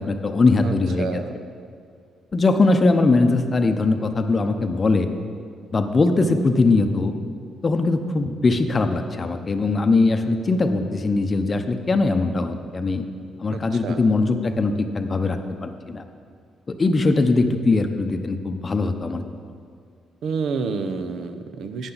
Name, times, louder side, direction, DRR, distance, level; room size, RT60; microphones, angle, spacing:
voice 1, 0.0-1.2 2.3-5.1 5.7-7.1 7.6-13.0 13.4-16.0 16.7-19.2, left 3 dB, 35° left, 7 dB, 0.7 m, -21 dB
voice 2, 0.6-1.3 13.5-14.0 20.2-21.9, right 5 dB, 70° right, 9 dB, 0.7 m, -29 dB
11.5 x 8.9 x 4.0 m, 2.2 s
cardioid pair, 90°, 0 cm